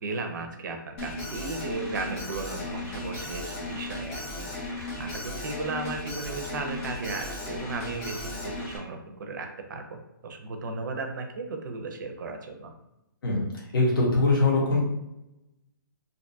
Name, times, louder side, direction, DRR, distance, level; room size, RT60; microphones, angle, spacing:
voice 1, 0.0-12.7, right 3 dB, 60° right, 5 dB, 0.4 m, -35 dB
Alarm, 1.0-8.8, left 2 dB, 25° left, 0.6 m, -36 dB
voice 2, 13.7-14.8, left 2 dB, 75° left, -3 dB, 0.8 m, -22 dB
2.5 x 2.2 x 2.5 m, 0.89 s
hypercardioid pair, 165°, 12 cm